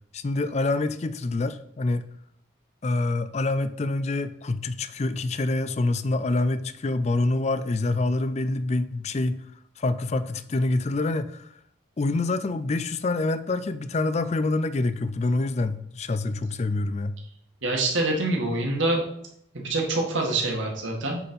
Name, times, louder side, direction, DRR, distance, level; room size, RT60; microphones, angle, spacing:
voice 1, 0.1-2.0 2.8-9.3 9.8-11.5 12.0-17.2, left 2 dB, 35° left, 12 dB, 0.4 m, -26 dB
voice 2, 17.6-19.0 19.5-21.2, right 2 dB, 65° right, 0 dB, 2.0 m, -25 dB
8.9 x 4.3 x 5.4 m, 0.72 s
head